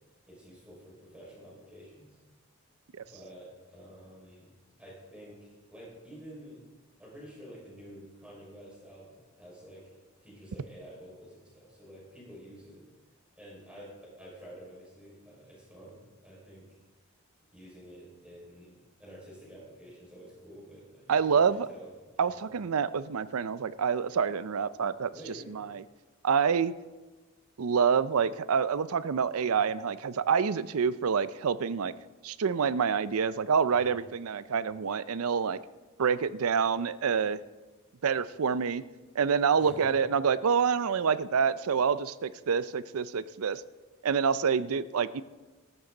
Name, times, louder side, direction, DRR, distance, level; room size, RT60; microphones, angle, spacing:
voice 1, 0.3-2.2 3.0-4.5 4.8-6.6 7.0-10.0 10.2-12.8 13.4-16.6 17.5-22.6 25.1-25.5 33.7-34.0 39.6-39.9, equal, 5° right, -5 dB, 5.1 m, -49 dB
voice 2, 21.1-21.7 22.2-25.1 25.5-25.8 26.2-26.7 27.6-31.9 32.2-35.6 36.0-37.4 38.0-38.8 39.2-43.6 44.0-45.2, right 6 dB, 85° right, 16 dB, 0.5 m, -27 dB
14.0 x 13.0 x 3.9 m, 1.2 s
head